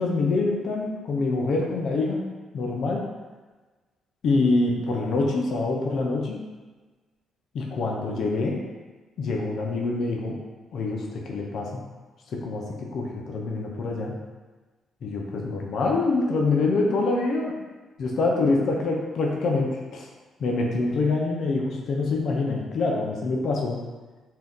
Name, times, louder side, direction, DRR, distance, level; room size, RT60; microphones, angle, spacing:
voice 1, 0.0-2.2 2.5-3.1 4.2-6.4 7.5-8.6 9.2-10.4 10.7-11.8 12.3-14.2 15.0-17.6 18.0-20.1 20.4-23.8, left 3 dB, 65° left, -1 dB, 0.5 m, -25 dB
2.7 x 2.3 x 3.5 m, 1.3 s
cardioid pair, 90°, 0 cm